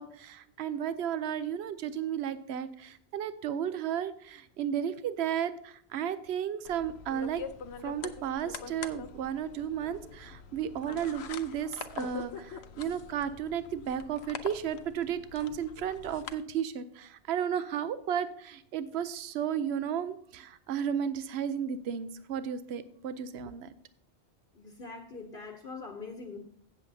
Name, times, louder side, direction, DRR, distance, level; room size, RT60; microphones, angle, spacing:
voice 1, 0.0-7.4 7.8-23.7, right 8 dB, 75° right, 13 dB, 0.9 m, -33 dB
sound 1, 6.6-16.3, left 6 dB, 70° left, 0.9 m, -44 dB
voice 2, 24.5-26.4, left 4 dB, 55° left, 4 dB, 1.1 m, -43 dB
16.0 x 7.2 x 2.7 m, 0.63 s
omnidirectional pair, 1.1 m